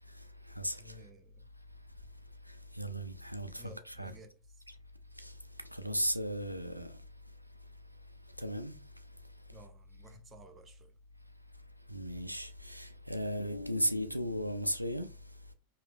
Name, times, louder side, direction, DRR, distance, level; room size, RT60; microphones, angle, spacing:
voice 1, 0.8-1.5 3.6-4.7 9.5-11.0, equal, 20° right, 0.7 m, -55 dB
voice 2, 2.8-4.1 5.2-5.3 5.7-6.9 8.4-8.8 11.9-15.1, equal, 90° right, 0.3 m, -35 dB
4.9 x 2.9 x 2.4 m
figure-of-eight pair, 90°, 0 cm